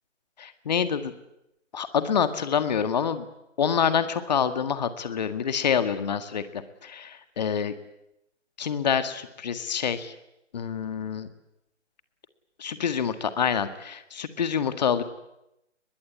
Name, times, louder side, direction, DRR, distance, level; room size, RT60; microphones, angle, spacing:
voice 1, 0.4-1.1 1.7-3.3 3.6-7.7 8.6-10.1 10.5-11.3 12.6-15.0, left 7 dB, 35° left, 10 dB, 1.8 m, -27 dB
22.5 x 21.5 x 9.9 m, 0.86 s
figure-of-eight pair, 150°, 36 cm